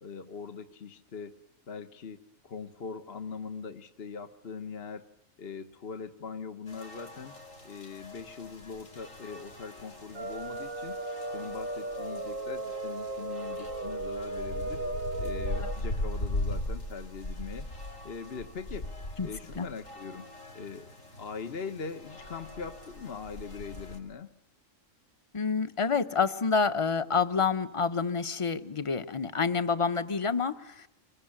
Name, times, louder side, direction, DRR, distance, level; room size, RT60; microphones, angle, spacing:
voice 1, 0.0-1.4 1.7-5.1 5.4-7.3 7.6-11.0 11.3-14.9 15.2-17.7 18.0-18.9 19.2-20.3 20.5-24.3, left 5 dB, 50° left, 7 dB, 1.4 m, -41 dB
sound 1, 6.7-24.0, left 1 dB, 75° left, 5.2 m, -40 dB
sound 2, 10.1-15.8, right 2 dB, 85° right, 2.9 m, -36 dB
voice 2, 25.3-30.9, left 5 dB, 25° left, 11 dB, 1.1 m, -28 dB
26.0 x 21.5 x 9.9 m, 0.84 s
omnidirectional pair, 1.4 m